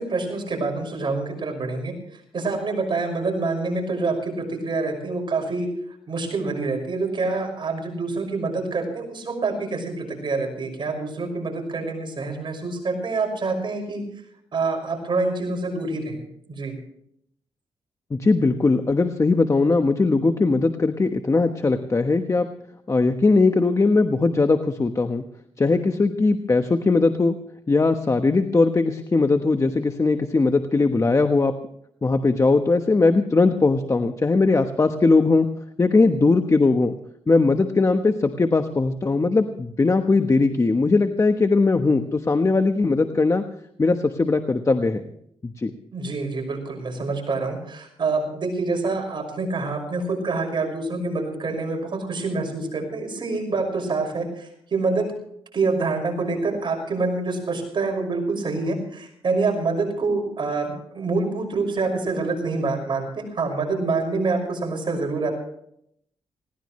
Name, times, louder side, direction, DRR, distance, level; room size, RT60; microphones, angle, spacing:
voice 1, 0.0-1.9 2.3-5.7 6.1-14.0 14.5-16.2 16.5-16.7 45.9-55.1 55.5-65.3, right 3 dB, 50° right, 3 dB, 5.9 m, -26 dB
voice 2, 18.1-22.5 22.9-25.2 25.6-27.3 27.7-31.5 32.0-35.5 35.8-36.9 37.3-43.4 43.8-45.0 45.4-45.7, left 3 dB, 30° left, 7 dB, 1.1 m, -20 dB
20.0 x 18.0 x 3.2 m, 0.70 s
cardioid pair, 75°, 10 cm